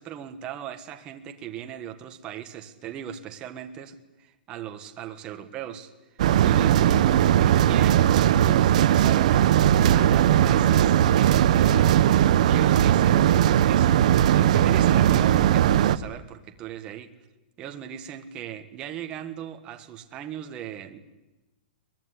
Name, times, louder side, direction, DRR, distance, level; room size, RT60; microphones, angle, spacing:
voice 1, 0.0-5.9 6.4-13.3 13.6-17.1 17.6-21.0, right 9 dB, 15° right, 6 dB, 1.4 m, -38 dB
sound 1, 6.2-16.0, right 11 dB, 45° right, 0.8 m, -19 dB
23.0 x 20.5 x 9.8 m, 1.0 s
hypercardioid pair, 175°, 5 cm